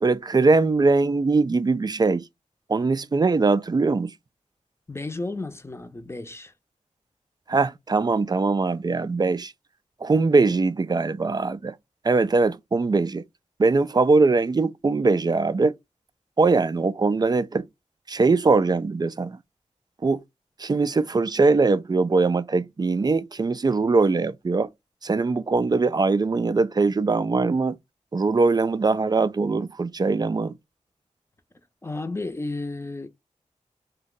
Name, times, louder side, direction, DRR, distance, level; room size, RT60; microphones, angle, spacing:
voice 1, 0.0-2.3 2.7-4.1 7.5-9.5 10.0-11.8 12.0-13.2 13.6-15.8 16.4-17.7 18.1-19.4 20.0-20.2 20.6-24.7 25.0-27.8 28.1-30.6, right 3 dB, 30° right, 0.3 m, -21 dB
voice 2, 4.9-6.5 31.8-33.1, left 2 dB, 20° left, 0.6 m, -32 dB
2.6 x 2.2 x 3.7 m
cardioid pair, 40°, 13 cm